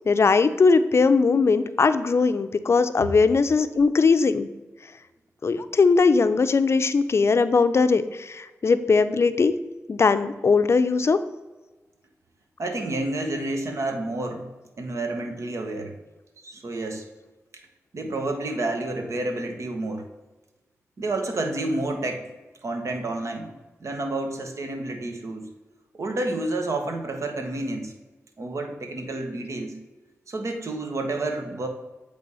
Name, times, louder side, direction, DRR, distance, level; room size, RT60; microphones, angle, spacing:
voice 1, 0.1-4.5 5.4-9.5 9.9-11.2, left 4 dB, 55° left, 11 dB, 0.4 m, -20 dB
voice 2, 12.6-14.5 14.8-15.9 16.4-17.1 17.9-20.0 21.0-22.3 22.6-23.5 23.8-25.5 25.9-27.9 28.4-29.8 30.3-31.7, right 2 dB, 65° right, 4 dB, 1.1 m, -29 dB
8.1 x 3.4 x 5.4 m, 1.2 s
cardioid pair, 60°, 5 cm